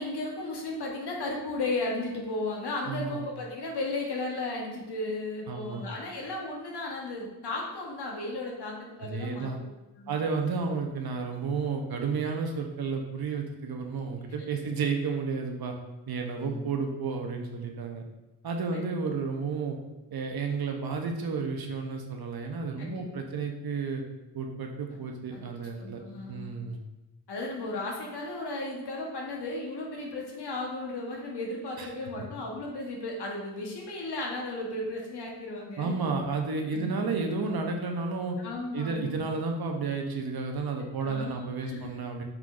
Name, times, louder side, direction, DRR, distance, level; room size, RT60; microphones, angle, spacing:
voice 1, 0.0-9.5 10.0-10.2 16.4-16.6 18.7-18.9 22.8-23.1 25.3-25.4 25.8-26.5 27.3-36.0 36.7-36.9 38.4-39.2 41.0-41.4 41.6-41.9, left 2 dB, 60° left, -1 dB, 1.1 m, -35 dB
voice 2, 2.9-3.2 5.5-5.9 9.0-9.6 10.1-15.7 16.1-18.0 18.4-19.8 20.1-24.0 24.3-26.0 26.3-26.8 31.8-31.9 35.8-38.4 38.7-42.2, right 4 dB, 55° right, 3 dB, 0.8 m, -32 dB
4.5 x 3.7 x 2.5 m, 1.0 s
supercardioid pair, 45°, 44 cm